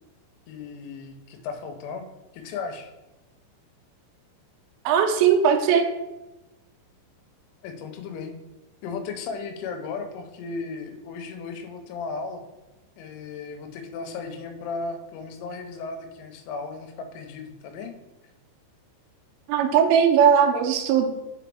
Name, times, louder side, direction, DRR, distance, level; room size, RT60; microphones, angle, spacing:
voice 1, 0.5-2.1 2.3-2.9 7.6-8.3 8.8-12.4 13.0-17.9, left 4 dB, 85° left, 6 dB, 3.2 m, -35 dB
voice 2, 4.9-5.8 19.5-21.1, right 8 dB, 90° right, 5 dB, 3.1 m, -19 dB
6.3 x 5.0 x 3.4 m, 1.0 s
omnidirectional pair, 5.5 m